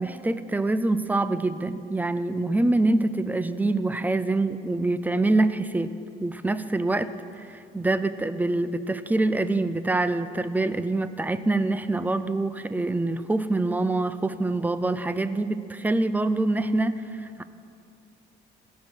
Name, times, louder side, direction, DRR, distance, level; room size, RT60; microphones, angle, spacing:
voice 1, 0.0-5.9 6.2-7.1 7.4-17.0 17.4-17.5, right 2 dB, 10° right, 12 dB, 0.4 m, -25 dB
16.5 x 5.6 x 6.1 m, 2.5 s
cardioid pair, 105°, 19 cm